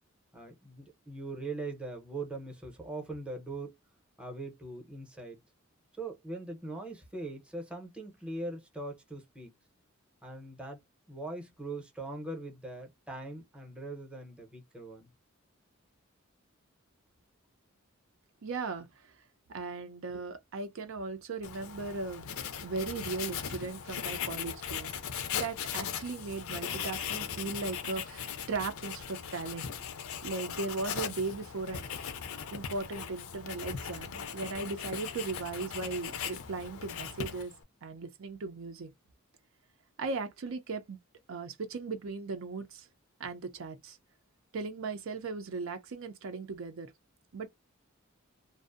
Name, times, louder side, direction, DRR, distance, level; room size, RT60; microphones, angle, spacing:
voice 1, 0.3-3.8 4.2-5.4 6.0-9.5 10.2-10.8 11.1-15.1, right 2 dB, 5° right, 0.7 m, -41 dB
voice 2, 18.4-19.1 19.5-22.3 22.6-25.0 25.3-29.7 30.2-31.9 32.5-37.5 37.8-38.9 40.0-41.0 41.3-42.9 43.2-44.0 44.5-46.9 47.3-47.5, right 4 dB, 65° right, 0.5 m, -37 dB
Writing, 21.4-37.6, left 7 dB, 75° left, 0.5 m, -39 dB
2.5 x 2.0 x 2.4 m
head